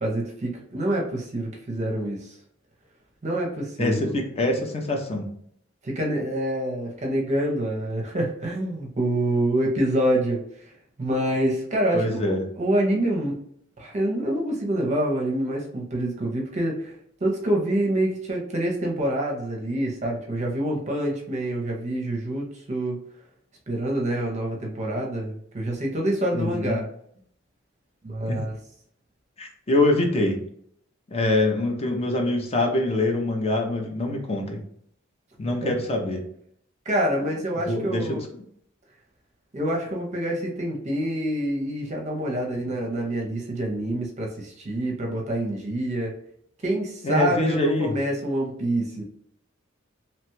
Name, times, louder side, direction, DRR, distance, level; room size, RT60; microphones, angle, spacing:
voice 1, 0.0-2.4 3.2-4.1 5.8-10.7 11.0-13.4 13.8-16.9 17.2-23.0 23.7-26.9 28.0-28.6 35.6-35.7 36.9-38.2 39.5-46.2 46.6-49.0, right 1 dB, 35° right, 0 dB, 0.6 m, -26 dB
voice 2, 3.8-5.3 11.9-12.4 26.3-26.8 28.3-28.4 29.4-30.4 31.1-34.6 35.4-36.2 37.7-38.2 47.0-47.9, left 2 dB, 30° left, 3 dB, 0.5 m, -24 dB
2.9 x 2.2 x 3.0 m, 0.66 s
head